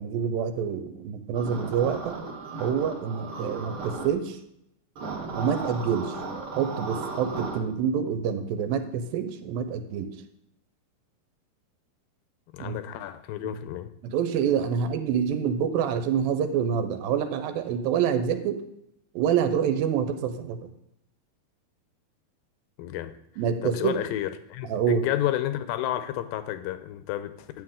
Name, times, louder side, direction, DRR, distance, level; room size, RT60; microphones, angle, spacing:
voice 1, 0.0-2.2 2.6-4.4 5.3-6.2 6.6-10.2 12.6-12.8 13.4-13.5 14.0-18.6 19.2-20.6 23.4-24.0 24.6-25.1, right 8 dB, 85° right, 9 dB, 2.5 m, -27 dB
sound 1, 1.3-4.1 5.0-7.6, right 3 dB, 55° right, 1.5 m, -35 dB
voice 2, 12.5-13.9 22.8-23.1 23.6-27.6, left 13 dB, 80° left, 11 dB, 2.2 m, -31 dB
9.5 x 7.8 x 3.6 m, 0.80 s
omnidirectional pair, 4.2 m